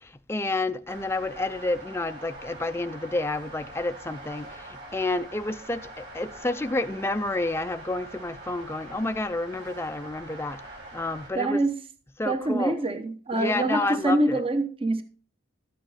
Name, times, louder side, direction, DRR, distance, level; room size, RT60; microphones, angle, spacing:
voice 1, 0.0-10.6 10.9-11.6 12.2-12.7 13.3-14.4, left 2 dB, 15° left, 0.5 m, -30 dB
sound 1, 0.9-11.3, right 2 dB, 60° right, 4.7 m, -44 dB
voice 2, 11.4-11.8 12.2-15.0, right 1 dB, 30° right, 0.9 m, -25 dB
13.0 x 8.9 x 4.1 m
head